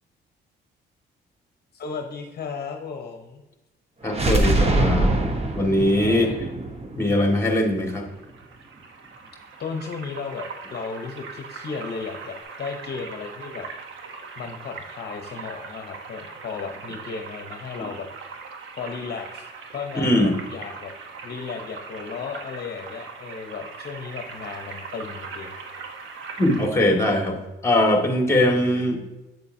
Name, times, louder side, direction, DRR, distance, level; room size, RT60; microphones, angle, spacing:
voice 1, 1.7-3.4 5.9-6.4 9.6-13.7 14.4-18.1 18.8-19.5 19.7-20.9 21.2-25.6, left 5 dB, 55° left, 4 dB, 0.9 m, -34 dB
voice 2, 4.0-5.2 5.5-6.3 6.9-8.1 19.9-20.4 26.4-29.0, left 1 dB, 15° left, 2 dB, 1.9 m, -21 dB
sound 1, 4.1-7.9, right 1 dB, 30° right, 1.0 m, -23 dB
sound 2, 7.8-26.7, right 5 dB, 80° right, 1.1 m, -40 dB
8.0 x 6.9 x 2.7 m, 1.1 s
cardioid pair, 90°, 20 cm